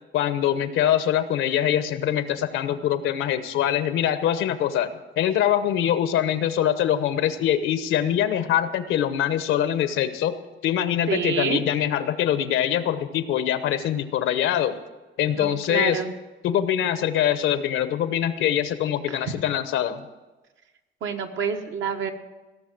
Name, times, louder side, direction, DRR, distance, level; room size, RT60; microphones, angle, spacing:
voice 1, 0.1-10.3 10.6-14.8 15.2-16.0 16.4-20.1, left 10 dB, 90° left, 11 dB, 1.0 m, -23 dB
voice 2, 11.1-11.6 15.3-16.1 19.2-19.3 21.0-22.1, right 6 dB, 75° right, 4 dB, 1.3 m, -28 dB
16.5 x 6.5 x 7.7 m, 1.2 s
cardioid pair, 90°, 20 cm